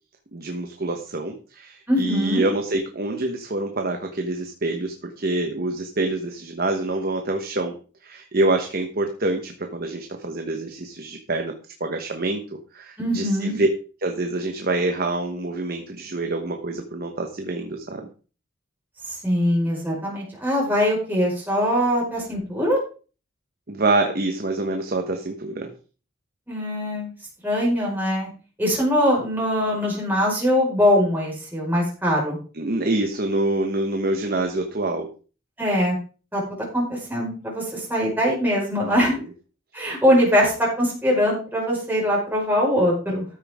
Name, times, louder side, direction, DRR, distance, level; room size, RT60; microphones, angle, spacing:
voice 1, 0.3-7.7 8.0-11.5 11.8-12.4 12.7-13.7 14.0-18.0 23.7-25.7 32.5-35.1, right 2 dB, 45° right, 4 dB, 1.2 m, -26 dB
voice 2, 1.9-2.4 13.0-13.6 19.1-22.8 26.5-27.1 27.4-28.3 28.6-32.4 35.6-35.9 36.3-39.2 39.7-43.2, equal, 10° right, -4 dB, 5.0 m, -22 dB
13.5 x 9.2 x 3.6 m, 0.37 s
head